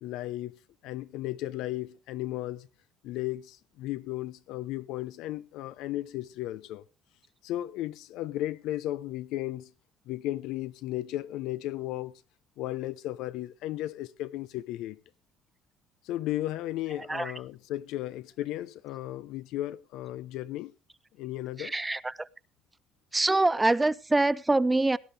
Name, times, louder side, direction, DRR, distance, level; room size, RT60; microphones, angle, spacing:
voice 1, 0.0-2.7 3.0-6.8 7.4-9.7 10.1-12.1 12.6-15.0 16.0-20.7 21.2-21.7, left 15 dB, 80° left, 0.8 m, -35 dB
voice 2, 21.6-22.3 23.1-25.0, right 2 dB, 15° right, 0.6 m, -25 dB
18.0 x 11.5 x 3.4 m
cardioid pair, 105°, 0 cm